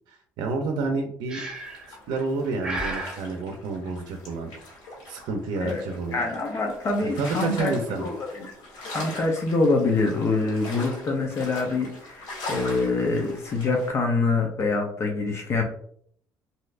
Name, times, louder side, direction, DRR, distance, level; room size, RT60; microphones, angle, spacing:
voice 1, 0.1-1.4 1.9-4.5 5.1-6.2 7.0-8.0, right 3 dB, 80° right, 4 dB, 0.5 m, -29 dB
Breathing, 1.3-1.9 2.6-3.2, right 2 dB, 10° right, 0.7 m, -32 dB
sound 1, 1.4-13.9, left 2 dB, 85° left, 1.3 m, -41 dB
voice 2, 6.1-7.7 8.0-8.5 8.9-15.6, left 3 dB, 40° left, 2 dB, 0.6 m, -25 dB
3.2 x 2.7 x 2.4 m, 0.62 s
cardioid pair, 125°, 7 cm